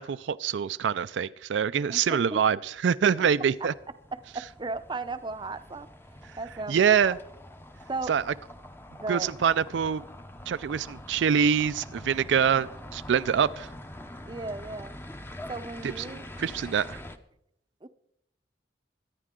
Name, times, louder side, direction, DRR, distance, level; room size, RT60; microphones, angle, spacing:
voice 1, 0.0-3.7 6.7-7.2 8.1-8.2 9.1-10.0 10.5-13.7 15.8-17.0, right 7 dB, 85° right, 0.4 m, -25 dB
voice 2, 1.9-2.4 4.1-7.2 7.9-8.1 9.0-9.3 14.3-15.0 15.5-16.3 17.8-17.9, right 3 dB, 25° right, 0.6 m, -36 dB
sound 1, 2.6-17.2, left 1 dB, 15° left, 0.7 m, -45 dB
Motorcycle, 9.9-13.8, equal, 75° left, 6.6 m, -58 dB
23.5 x 9.9 x 3.7 m
head